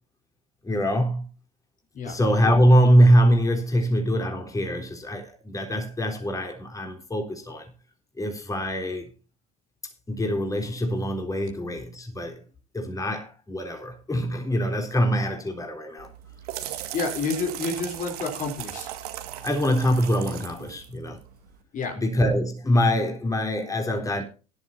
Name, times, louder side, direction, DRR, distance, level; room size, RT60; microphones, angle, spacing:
voice 1, 0.6-1.3 2.0-7.7 8.2-9.1 10.1-12.4 12.7-16.1 19.4-21.2 22.0-24.2, equal, 15° left, 3.8 m, -23 dB
sound 1, 16.0-21.6, right 12 dB, 80° right, 1.9 m, -37 dB
voice 2, 16.9-18.9 21.7-22.0, left 4 dB, 45° left, 3.5 m, -29 dB
17.5 x 11.0 x 2.7 m
hypercardioid pair, 80°, 19 cm